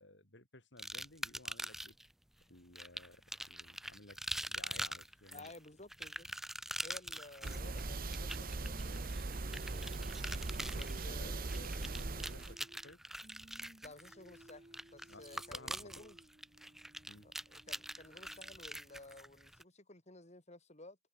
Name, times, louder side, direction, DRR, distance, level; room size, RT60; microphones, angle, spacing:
voice 1, 0.0-2.0 2.5-5.5 10.6-13.0 15.1-16.0 17.1-17.3, left 2 dB, 80° left, 7.6 m, -56 dB
sound 1, 0.8-2.1 2.8-19.6, right 1 dB, ahead, 0.3 m, -44 dB
voice 2, 5.3-6.3 6.8-10.1 10.7-11.4 13.8-16.2 17.2-21.0, left 2 dB, 40° left, 7.2 m, -55 dB
sound 2, 7.4-12.6, right 3 dB, 55° right, 1.1 m, -40 dB
Singing, 8.6-13.0 13.2-19.2, right 1 dB, 35° right, 1.5 m, -60 dB
head